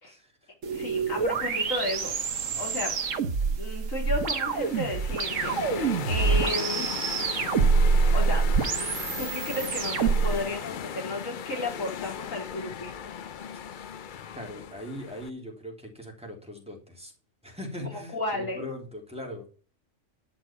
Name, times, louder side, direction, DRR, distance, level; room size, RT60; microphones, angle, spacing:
voice 1, 0.0-0.5 0.9-1.3 2.4-2.7 14.3-17.1 17.4-19.6, left 1 dB, 5° right, 0 dB, 3.3 m, -41 dB
sound 1, 0.6-10.4, right 5 dB, 75° right, 1.6 m, -26 dB
voice 2, 0.7-2.1 2.6-3.0 3.4-7.0 8.1-8.9 9.2-13.1 18.1-18.7, left 2 dB, 80° left, 0 dB, 4.2 m, -33 dB
sound 2, 4.0-15.3, left 8 dB, 50° left, 0.6 m, -37 dB
11.0 x 6.2 x 7.3 m, 0.38 s
omnidirectional pair, 1.4 m